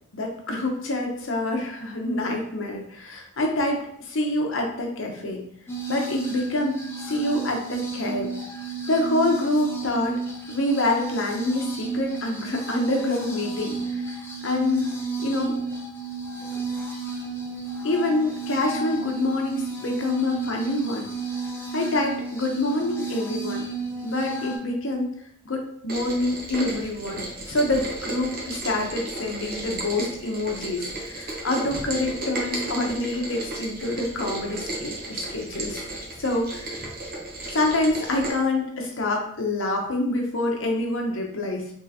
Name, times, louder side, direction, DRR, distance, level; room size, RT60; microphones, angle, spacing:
voice 1, 0.1-5.4 5.9-8.3 8.9-10.2 10.5-14.9 15.2-15.6 17.8-21.1 21.7-23.6 24.0-25.1 25.4-35.8 36.2-36.8 37.5-41.7, left 2 dB, 70° left, 1 dB, 0.8 m, -26 dB
sound 1, 5.7-24.6, right 4 dB, 10° left, 0.6 m, -32 dB
Rain, 25.9-38.3, right 2 dB, 50° right, 0.8 m, -34 dB
3.6 x 3.1 x 2.8 m, 0.69 s
head